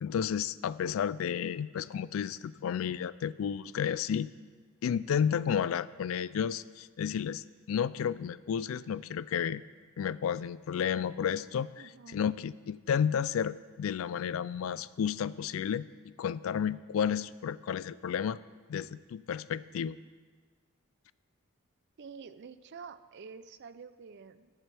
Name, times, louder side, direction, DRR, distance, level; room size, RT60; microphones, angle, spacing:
voice 1, 0.0-4.3 4.8-9.6 10.0-15.9 16.2-18.4 18.7-20.0, left 8 dB, 75° left, 18 dB, 0.3 m, -32 dB
voice 2, 11.8-12.2 22.0-24.5, right 5 dB, 55° right, 13 dB, 0.4 m, -48 dB
20.5 x 7.4 x 3.4 m, 1.5 s
head